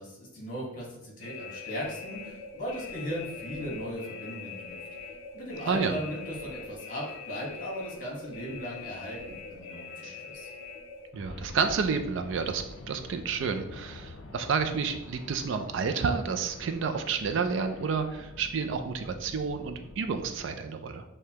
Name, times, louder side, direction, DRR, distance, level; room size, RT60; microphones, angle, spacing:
voice 1, 0.0-4.8 5.3-10.5, equal, 40° left, -3 dB, 1.3 m, -37 dB
Nuculear Bomb sequence, 1.2-20.4, left 3 dB, 65° left, 0.5 m, -44 dB
voice 2, 5.7-6.0 10.0-10.2 11.1-21.0, right 5 dB, 60° right, 7 dB, 0.3 m, -30 dB
6.5 x 2.2 x 2.8 m, 0.91 s
head